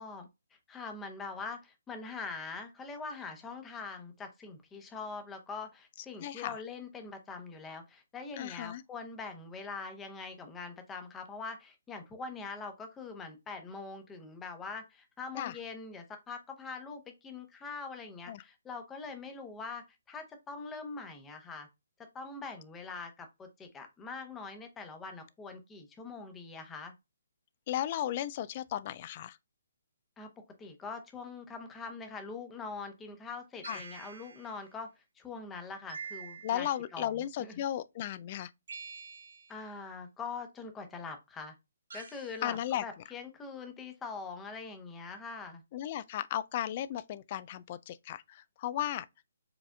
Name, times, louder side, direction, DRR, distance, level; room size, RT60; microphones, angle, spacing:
voice 1, 0.0-21.7 22.1-26.9 30.2-30.3 30.6-34.9 35.2-36.7 36.9-37.6 39.5-41.5 41.9-45.6, left 4 dB, 15° left, 0.8 m, -43 dB
voice 2, 6.2-6.6 8.4-8.8 15.4-15.6 18.3-18.4 27.7-29.4 33.6-33.8 36.4-38.5 42.4-42.8 45.7-49.1, left 11 dB, 40° left, 0.3 m, -35 dB
sound 1, 33.6-34.6 35.9-36.8 38.7-39.6 41.9-42.4, right 5 dB, 60° right, 1.0 m, -46 dB
4.8 x 3.4 x 2.3 m
figure-of-eight pair, 140°, 0 cm